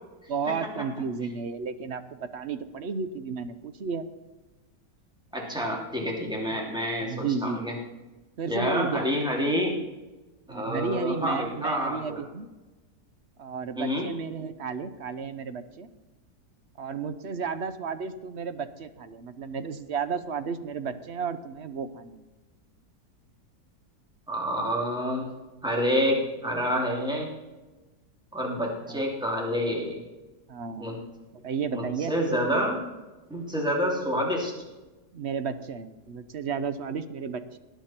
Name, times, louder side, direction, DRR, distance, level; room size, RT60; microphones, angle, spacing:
voice 1, 0.3-4.1 6.5-6.7 7.0-7.6 8.4-9.1 10.5-12.5 13.4-15.9 16.8-22.3 28.9-29.0 30.5-30.9 31.4-32.1 35.1-37.6, right 5 dB, 50° right, 11 dB, 0.9 m, -33 dB
voice 2, 5.3-7.7 8.5-9.8 10.5-12.2 13.8-14.1 24.3-25.3 25.6-27.3 28.3-30.0 30.8-31.0 31.7-32.8 33.3-34.5, equal, ahead, -1 dB, 2.8 m, -28 dB
19.0 x 10.5 x 4.4 m, 1.1 s
omnidirectional pair, 1.8 m